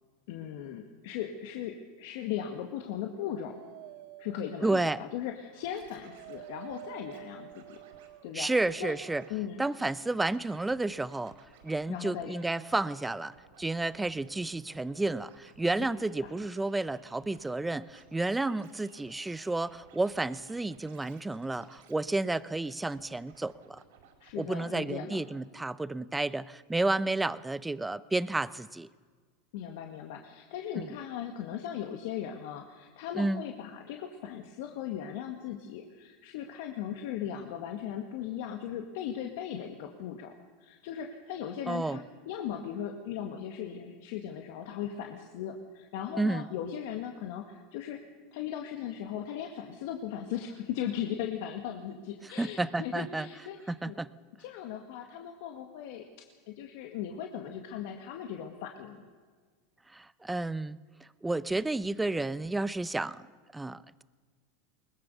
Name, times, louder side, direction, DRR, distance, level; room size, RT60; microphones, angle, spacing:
voice 1, 0.3-3.6 4.2-7.8 8.2-8.5 8.8-8.9 9.3-9.6 11.9-12.3 16.2-16.3 24.2-25.2 29.5-48.0 48.3-54.0 54.4-59.0, left 9 dB, 70° left, 4 dB, 1.9 m, -38 dB
Dog, 2.9-8.4, right 13 dB, 60° right, 1.0 m, -50 dB
voice 2, 4.6-5.0 8.3-9.2 9.6-11.3 11.6-23.8 24.4-28.9 30.8-30.9 33.2-33.4 41.7-42.0 46.2-46.5 52.4-53.3 53.7-54.1 59.9-60.8 61.2-63.3 63.5-64.0, right 2 dB, 10° right, 17 dB, 0.7 m, -31 dB
Scratching (performance technique), 5.5-7.2 7.5-8.1 8.6-9.3 9.6-24.6 24.9-25.0, right 6 dB, 80° right, 5.3 m, -59 dB
22.0 x 21.0 x 6.9 m, 1.5 s
supercardioid pair, 120°, 0 cm